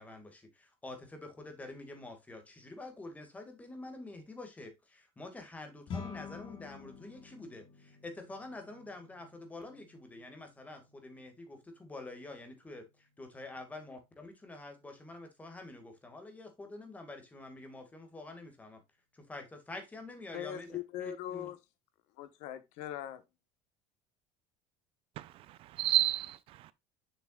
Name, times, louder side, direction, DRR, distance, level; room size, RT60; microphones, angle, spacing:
voice 1, 0.0-12.8 13.2-18.8 19.1-21.5, left 2 dB, 10° left, 1.9 m, -47 dB
sound 1, 5.9-15.3, left 5 dB, 45° left, 1.9 m, -51 dB
voice 2, 20.3-21.6 22.2-23.2, left 11 dB, 70° left, 1.1 m, -40 dB
voice 3, 25.2-26.7, right 14 dB, 55° right, 0.5 m, -31 dB
7.0 x 6.0 x 2.4 m
cardioid pair, 140°, 12 cm